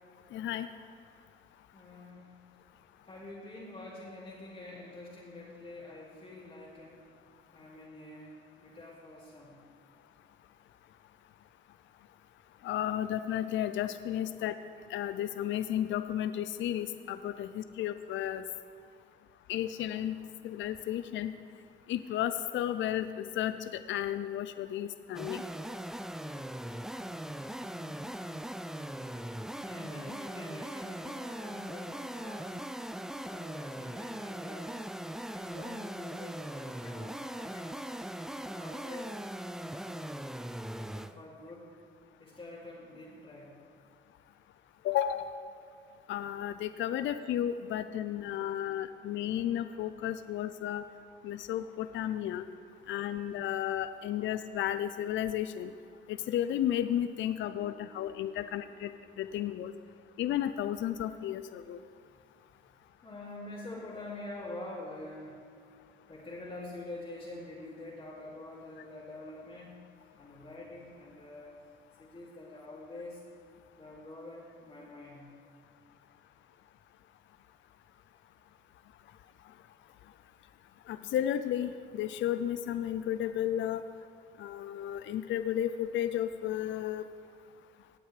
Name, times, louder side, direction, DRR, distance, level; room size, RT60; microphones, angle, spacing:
voice 1, 0.3-0.7 12.6-14.5 14.9-18.4 19.5-21.3 21.9-23.6 23.9-25.4 44.8-45.3 46.1-50.8 51.2-52.4 52.9-55.7 56.1-58.9 59.2-59.7 60.2-61.8 80.9-83.8 84.4-87.0, left 11 dB, 70° left, 11 dB, 0.5 m, -33 dB
voice 2, 1.7-2.4 3.0-7.1 7.5-9.6 27.3-28.6 29.6-32.7 33.2-34.8 35.3-37.9 38.3-39.1 39.7-40.2 40.7-41.7 42.2-43.5 48.0-48.7 57.3-59.5 62.0-62.1 62.5-62.6 63.0-65.4 66.1-69.8 70.2-71.6 72.0-73.2 73.7-75.3, left 2 dB, 30° left, -9 dB, 2.4 m, -47 dB
sound 1, 25.1-41.2, right 1 dB, 5° right, 0.3 m, -40 dB
17.5 x 7.8 x 3.3 m, 2.4 s
cardioid pair, 90°, 20 cm